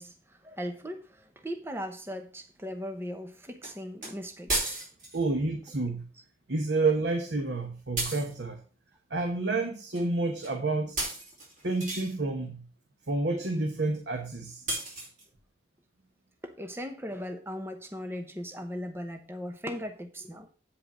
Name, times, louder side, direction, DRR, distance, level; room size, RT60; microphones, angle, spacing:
voice 1, 0.0-4.8 16.4-20.5, equal, 15° right, 6 dB, 0.8 m, -38 dB
sound 1, 3.6-3.7 4.0-4.1 4.5-5.2 8.0-8.3 9.9-10.1 10.4-10.6 11.0-12.1 14.7-15.2, right 2 dB, 45° right, 4.5 m, -33 dB
voice 2, 5.1-6.0 6.5-8.6 9.1-11.0 11.6-12.6 13.1-14.8, right 3 dB, 75° right, 4 dB, 1.2 m, -29 dB
8.7 x 5.1 x 6.1 m, 0.37 s
head